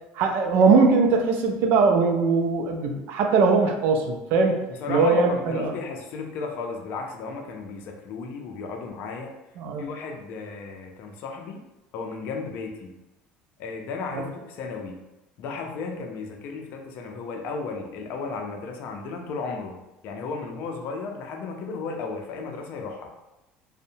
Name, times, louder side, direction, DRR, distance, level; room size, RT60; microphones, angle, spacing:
voice 1, 0.1-4.6 4.9-5.7 9.6-9.9 14.1-14.2, right 4 dB, 60° right, 3 dB, 0.4 m, -21 dB
voice 2, 4.8-9.3 9.8-11.6 11.9-12.9 13.6-15.0 15.4-19.8 20.0-23.1, left 4 dB, 55° left, 3 dB, 0.4 m, -34 dB
2.6 x 2.1 x 2.6 m, 0.97 s
cardioid pair, 130°, 4 cm